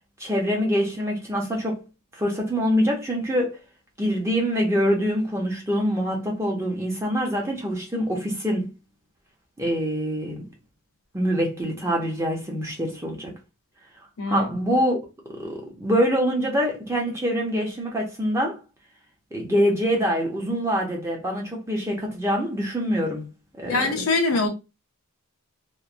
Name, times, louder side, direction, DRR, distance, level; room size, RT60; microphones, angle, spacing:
voice 1, 0.2-1.8 2.1-3.6 4.0-8.7 9.6-10.5 11.1-13.4 14.3-15.0 15.3-18.6 19.3-23.3 23.6-24.0, equal, 10° right, 0.5 m, -25 dB
voice 2, 14.2-14.5 23.7-24.5, left 3 dB, 75° left, 0.7 m, -23 dB
3.0 x 2.0 x 2.4 m
head